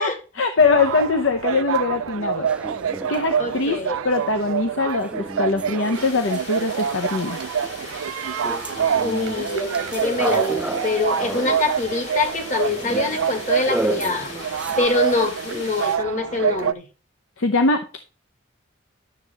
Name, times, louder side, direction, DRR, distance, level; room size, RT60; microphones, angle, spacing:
voice 1, 0.0-2.5 3.1-3.8 4.0-7.4 17.4-18.0, left 3 dB, 75° left, 0.7 m, -22 dB
sound 1, 0.6-16.7, right 8 dB, 90° right, 0.4 m, -26 dB
sound 2, 2.4-6.8 7.1-14.9, right 1 dB, 5° right, 0.3 m, -33 dB
voice 2, 3.4-4.0 9.0-14.3 14.8-16.9, left 3 dB, 40° left, 1.5 m, -24 dB
sound 3, 5.9-16.0, left 3 dB, 55° left, 4.2 m, -39 dB
11.0 x 7.4 x 3.4 m
head